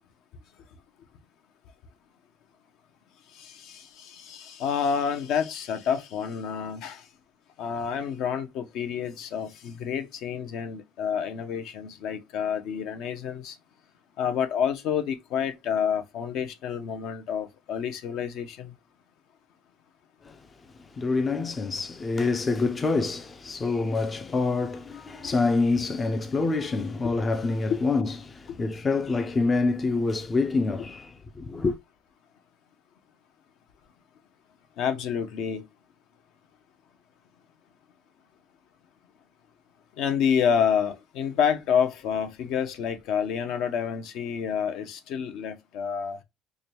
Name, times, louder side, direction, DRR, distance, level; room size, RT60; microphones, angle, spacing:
voice 1, 3.3-7.0 7.6-13.6 14.2-18.7 27.0-27.1 34.8-35.6 40.0-46.2, left 7 dB, 65° left, 0.7 m, -28 dB
voice 2, 20.8-31.8, left 3 dB, 20° left, 0.4 m, -26 dB
4.9 x 2.2 x 2.8 m
cardioid pair, 140°, 0 cm